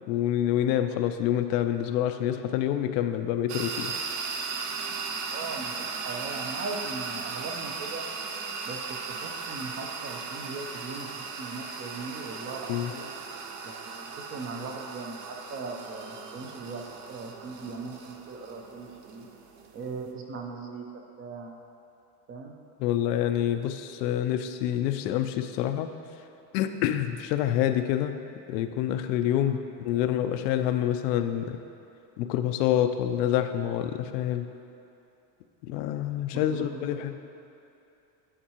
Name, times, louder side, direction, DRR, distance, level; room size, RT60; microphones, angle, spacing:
voice 1, 0.1-3.9 12.7-12.9 22.8-25.9 26.5-28.2 28.5-31.6 32.2-34.5 35.6-37.1, left 11 dB, 85° left, 8 dB, 0.5 m, -27 dB
sound 1, 3.5-20.1, right 5 dB, 85° right, 0.8 m, -37 dB
voice 2, 5.3-8.0 8.7-13.1 13.6-16.8 17.1-19.3 19.7-20.9 21.2-21.6 22.3-22.5 29.4-29.6 29.9-30.0 36.3-37.1, right 4 dB, 30° right, 3 dB, 0.4 m, -39 dB
10.0 x 4.5 x 2.9 m, 2.7 s
supercardioid pair, 130°, 48 cm